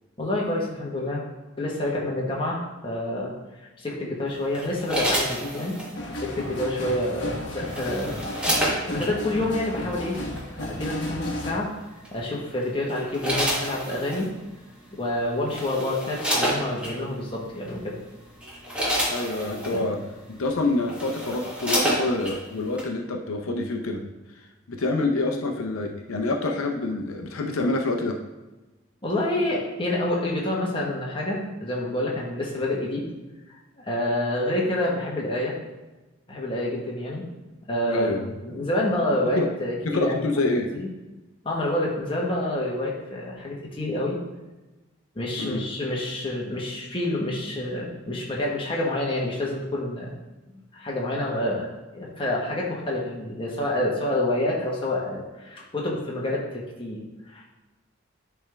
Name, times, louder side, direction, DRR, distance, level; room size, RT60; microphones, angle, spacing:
voice 1, 0.2-1.2 1.6-3.3 3.8-5.8 6.1-8.2 8.9-10.2 10.6-11.8 12.1-14.4 14.9-18.0 19.7-19.8 29.0-33.1 33.8-35.5 36.3-37.2 37.7-40.9 41.4-44.2 45.1-50.2 50.7-51.7 51.9-57.4, left 1 dB, 25° left, -3 dB, 1.2 m, -28 dB
sound 1, 4.5-5.9 7.2-9.1 10.1-10.4 12.1-12.4 12.9-14.3 15.1-15.2 15.5-16.9 17.7-17.8 18.3-19.8 20.5-20.6 20.8-22.4 22.8-22.9, equal, 5° right, 1.1 m, -28 dB
sound 2, 5.9-11.5, left 1 dB, 55° left, 1.1 m, -33 dB
voice 2, 19.1-24.0 24.4-28.2 37.9-38.3 39.4-39.5 39.8-40.7 45.4-45.7, left 2 dB, 85° left, 3 dB, 0.7 m, -27 dB
9.9 x 3.5 x 3.4 m, 1.1 s
head